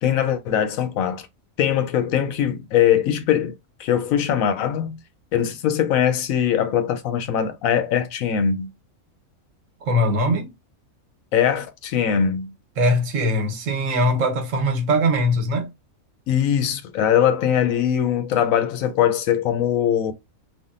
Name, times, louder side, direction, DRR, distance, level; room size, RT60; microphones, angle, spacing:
voice 1, 0.0-1.3 1.6-5.0 5.3-8.7 11.3-12.5 16.3-20.1, left 9 dB, 85° left, 1.0 m, -21 dB
voice 2, 9.8-10.5 12.8-15.7, equal, 70° right, 1.2 m, -21 dB
3.5 x 2.3 x 2.4 m
omnidirectional pair, 1.4 m